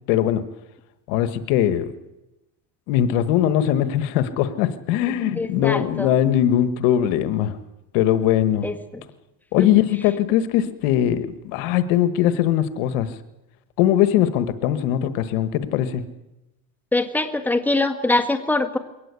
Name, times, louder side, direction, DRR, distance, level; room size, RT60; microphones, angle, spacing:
voice 1, 0.1-0.4 1.1-1.9 2.9-7.6 7.9-8.7 9.5-13.1 13.8-16.0, left 11 dB, 80° left, 11 dB, 1.5 m, -20 dB
voice 2, 5.1-6.1 8.6-9.0 9.6-9.7 16.9-18.8, left 2 dB, 5° left, 4 dB, 1.8 m, -23 dB
22.0 x 18.5 x 8.3 m, 0.97 s
cardioid pair, 135°, 40 cm